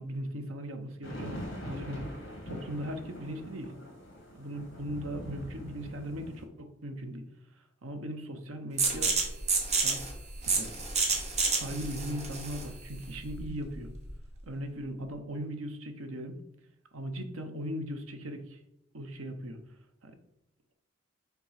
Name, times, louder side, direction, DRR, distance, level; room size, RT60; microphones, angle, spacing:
voice 1, 0.0-2.2 2.5-3.7 4.3-7.2 7.8-9.2 9.8-10.0 10.4-10.8 11.5-13.9 14.5-16.4 16.9-18.6 18.9-19.6 20.0-20.1, equal, 80° right, 6 dB, 0.9 m, -38 dB
sound 1, 1.0-6.4, left 1 dB, 60° left, 2.0 m, -43 dB
sound 2, 8.8-14.3, right 4 dB, 30° right, 1.2 m, -30 dB
5.9 x 3.8 x 5.7 m, 0.83 s
head